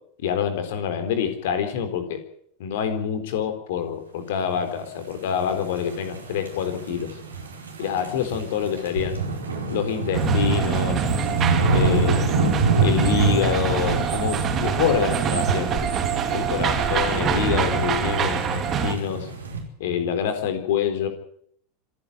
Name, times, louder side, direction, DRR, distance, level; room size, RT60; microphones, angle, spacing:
voice 1, 0.2-2.2 2.6-7.1 7.8-9.2 9.7-11.0 11.7-12.3 12.8-15.9 16.3-19.3 19.8-21.1, left 8 dB, 60° left, 8 dB, 4.0 m, -26 dB
sound 1, 5.3-19.6, right 3 dB, 80° right, 4.6 m, -26 dB
sound 2, 10.1-18.9, right 7 dB, 35° right, 3.3 m, -26 dB
26.0 x 10.5 x 9.7 m, 0.66 s
figure-of-eight pair, 85°, 0 cm